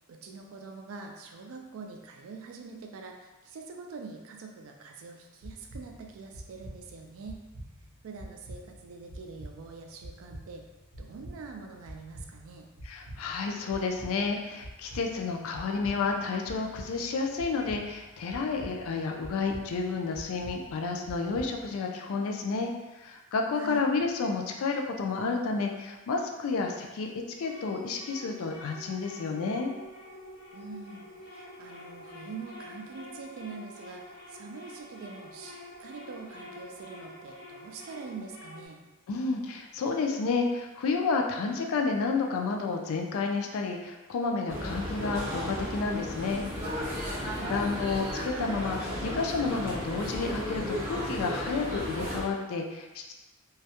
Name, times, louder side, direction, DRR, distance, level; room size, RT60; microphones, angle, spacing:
voice 1, 0.1-7.4 8.0-10.6 11.0-12.7 23.6-23.9 30.5-38.8 47.2-47.5, right 4 dB, 65° right, 3 dB, 0.3 m, -44 dB
sound 1, 5.4-21.8, right 1 dB, 85° right, 0.7 m, -47 dB
voice 2, 12.8-22.7 23.0-27.1 27.4-29.7 39.1-46.4 47.5-53.1, left 4 dB, 70° left, 2 dB, 0.3 m, -30 dB
sound 2, 26.7-38.7, left 1 dB, 90° left, 0.9 m, -47 dB
sound 3, 44.5-52.2, left 1 dB, 10° right, 0.6 m, -34 dB
2.2 x 2.0 x 2.8 m, 1.1 s
head